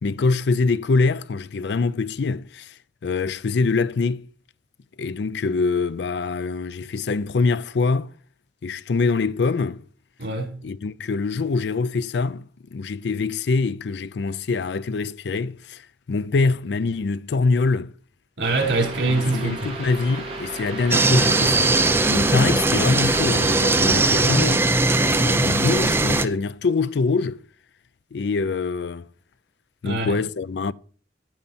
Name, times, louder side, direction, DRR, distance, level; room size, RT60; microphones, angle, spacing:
voice 1, 0.0-2.7 3.0-4.3 5.0-8.1 8.6-9.8 10.6-15.8 16.1-17.9 19.0-21.8 22.1-24.7 25.0-27.4 28.1-29.1 29.8-30.7, left 4 dB, 70° left, 0.4 m, -24 dB
voice 2, 10.2-10.6 18.4-19.7 29.8-30.1, right 2 dB, 75° right, 3.8 m, -24 dB
sound 1, 18.4-24.6, right 2 dB, 30° right, 3.1 m, -34 dB
sound 2, 20.9-26.3, right 2 dB, 15° right, 0.5 m, -19 dB
10.0 x 9.0 x 4.3 m
head